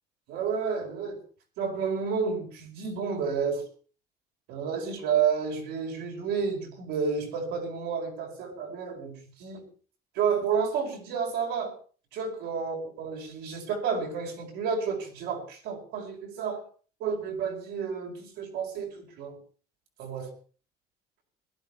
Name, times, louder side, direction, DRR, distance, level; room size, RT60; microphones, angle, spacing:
voice 1, 0.3-1.2 1.6-3.7 4.5-9.7 10.1-11.8 12.1-16.6 17.0-19.4 20.0-20.3, right 6 dB, 90° right, 0 dB, 5.1 m, -30 dB
20.5 x 11.5 x 4.7 m, 0.40 s
cardioid pair, 110°, 17 cm